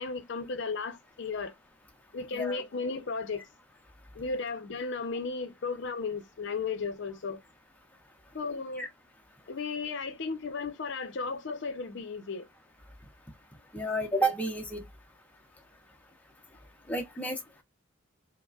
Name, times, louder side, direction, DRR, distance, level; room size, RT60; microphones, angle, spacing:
voice 1, 0.0-1.5 2.1-3.5 4.1-7.4 8.3-8.9 9.5-12.5, left 4 dB, 55° left, 0.5 m, -35 dB
voice 2, 2.3-2.6 8.8-8.9 13.7-14.8 16.9-17.6, right 1 dB, 5° left, 0.5 m, -31 dB
4.8 x 2.0 x 2.3 m
head